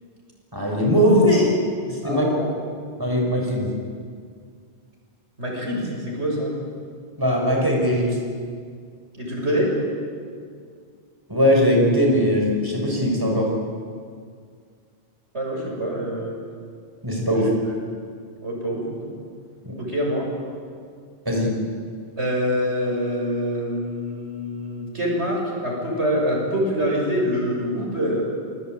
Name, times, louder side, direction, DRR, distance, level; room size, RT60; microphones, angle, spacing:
voice 1, 0.5-1.5 1.9-2.3 3.0-3.7 7.2-8.2 11.3-13.5 17.0-17.5 19.6-19.7 21.3-21.5, equal, 20° right, 0 dB, 5.6 m, -20 dB
voice 2, 2.0-2.5 5.4-6.5 9.2-9.7 15.3-16.3 17.3-17.8 18.4-19.1 19.8-20.3 22.2-28.2, equal, 85° right, -2 dB, 7.6 m, -25 dB
28.5 x 21.0 x 9.2 m, 2.1 s
omnidirectional pair, 1.1 m